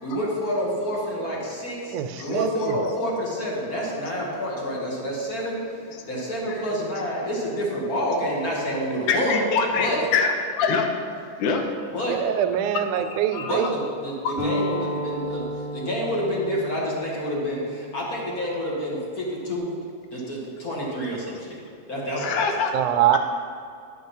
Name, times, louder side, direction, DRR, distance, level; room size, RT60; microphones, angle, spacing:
voice 1, 0.0-1.9 2.2-5.6 6.1-9.5 9.8-10.0 11.9-12.2 13.4-15.4 15.7-19.7 20.1-21.6 21.9-22.5, equal, 40° left, -4 dB, 1.6 m, -28 dB
voice 2, 1.9-2.8 12.1-13.7 22.7-23.2, right 11 dB, 85° right, 9 dB, 2.0 m, -24 dB
voice 3, 9.1-10.9 11.4-11.6 12.9-13.7 14.2-14.3 22.2-22.7, left 5 dB, 80° left, 4 dB, 2.4 m, -25 dB
sound 1, 14.4-19.6, equal, 20° left, 2.4 m, -33 dB
10.5 x 5.9 x 5.4 m, 2.4 s
omnidirectional pair, 3.5 m